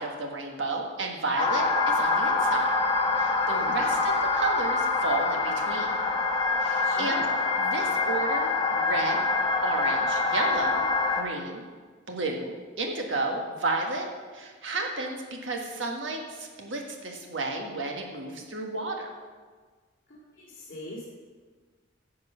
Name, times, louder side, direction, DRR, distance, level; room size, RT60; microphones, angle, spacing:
voice 1, 0.0-2.7 3.2-5.9 6.6-7.2 7.6-9.2 9.6-10.9 11.1-11.6 12.1-19.1, right 3 dB, 70° right, 2 dB, 1.6 m, -32 dB
sound 1, 1.4-11.2, left 3 dB, 25° left, 1.0 m, -25 dB
voice 2, 3.4-3.8 6.8-7.3 20.1-21.0, left 2 dB, 45° left, -8 dB, 2.6 m, -41 dB
10.5 x 6.7 x 5.6 m, 1.5 s
head